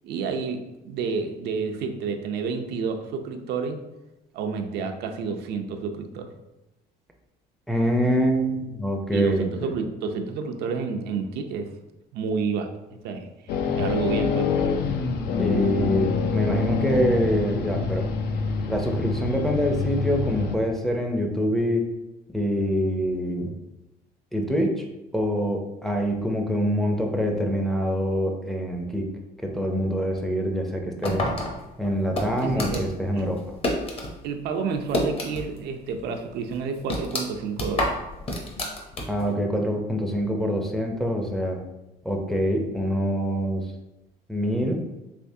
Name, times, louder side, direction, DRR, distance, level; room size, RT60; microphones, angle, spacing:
voice 1, 0.0-3.8 4.3-6.3 9.1-11.7 12.1-12.7 13.0-14.5 32.4-32.9 33.2-33.3 34.2-38.0, right 5 dB, 75° right, 5 dB, 0.4 m, -30 dB
voice 2, 7.7-9.7 15.4-18.1 18.7-21.8 22.3-23.5 24.3-24.8 25.1-29.1 29.4-31.3 31.8-33.4 39.1-41.6 42.0-43.6 44.3-44.8, equal, ahead, 1 dB, 0.5 m, -25 dB
sound 1, 13.5-20.6, left 5 dB, 70° left, 0.4 m, -26 dB
sound 2, 31.0-34.1 34.4-35.7 35.9-36.0 36.5-39.3, left 1 dB, 35° left, 0.8 m, -29 dB
3.4 x 3.1 x 2.7 m, 0.97 s
cardioid pair, 110°, 17 cm